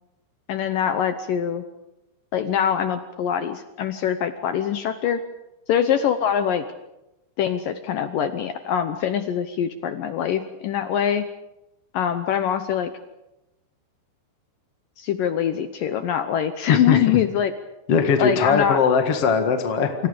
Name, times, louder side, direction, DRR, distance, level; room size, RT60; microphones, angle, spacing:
voice 1, 0.5-1.6 2.3-5.2 5.7-6.6 7.4-11.3 11.9-12.9 15.0-17.5 18.2-18.8, left 9 dB, 80° left, 9 dB, 2.0 m, -23 dB
voice 2, 17.9-19.9, left 6 dB, 50° left, 5 dB, 1.8 m, -20 dB
29.0 x 26.5 x 5.2 m, 0.94 s
omnidirectional pair, 5.2 m